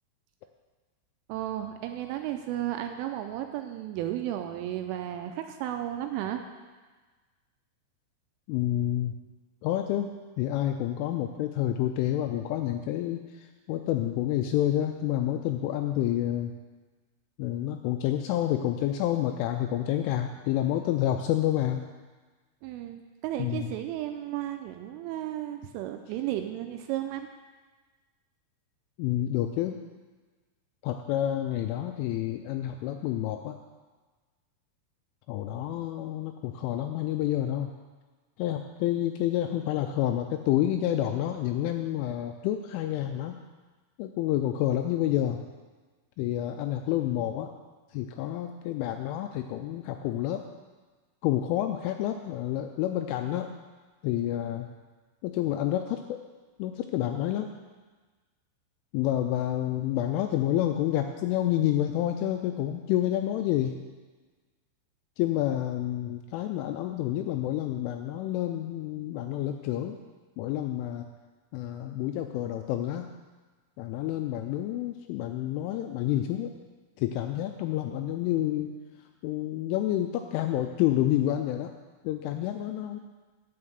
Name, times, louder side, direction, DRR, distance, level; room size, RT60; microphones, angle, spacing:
voice 1, 1.3-6.4 22.6-27.3, right 12 dB, 85° right, 6 dB, 2.9 m, -34 dB
voice 2, 8.5-9.1 9.6-16.5 17.4-21.8 23.4-23.7 29.0-29.8 30.8-33.6 35.3-37.7 38.4-43.4 44.0-45.4 46.2-47.5 47.9-50.4 51.2-53.5 54.0-54.7 55.2-56.2 56.6-57.5 58.9-63.8 65.2-70.0 70.4-71.1 71.5-73.1 73.8-76.5 77.0-78.7 79.2-81.7 82.0-83.0, left 12 dB, 85° left, 6 dB, 2.8 m, -29 dB
9.6 x 5.6 x 7.8 m, 1.3 s
omnidirectional pair, 6.0 m